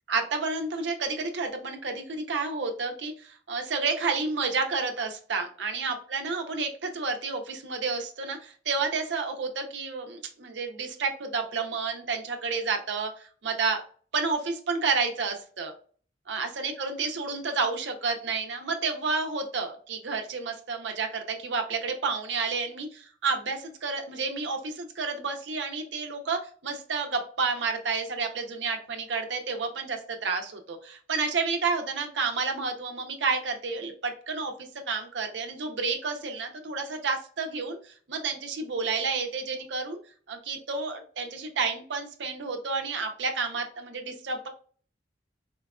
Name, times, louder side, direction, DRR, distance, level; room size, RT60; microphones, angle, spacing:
voice 1, 0.1-13.8 14.1-15.7 16.3-40.0 40.3-44.5, right 4 dB, 85° right, 5 dB, 0.6 m, -30 dB
4.4 x 2.3 x 2.2 m, 0.44 s
head